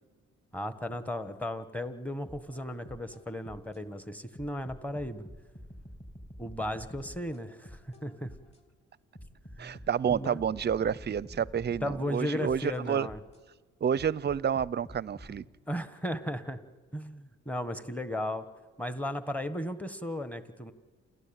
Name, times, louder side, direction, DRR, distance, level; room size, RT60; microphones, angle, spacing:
voice 1, 0.5-5.2 6.4-8.3 9.6-9.8 10.1-10.4 11.8-13.2 15.7-16.6 16.9-18.4 18.8-20.7, left 1 dB, 5° left, 11 dB, 1.4 m, -35 dB
sound 1, 2.3-3.8 4.4-8.6 9.2-13.4 14.0-15.4, equal, 20° left, 3.0 m, -48 dB
voice 2, 9.6-13.1 13.8-15.4, right 8 dB, 35° right, 22 dB, 0.6 m, -29 dB
28.5 x 13.0 x 8.9 m, 1.4 s
cardioid pair, 90°, 30 cm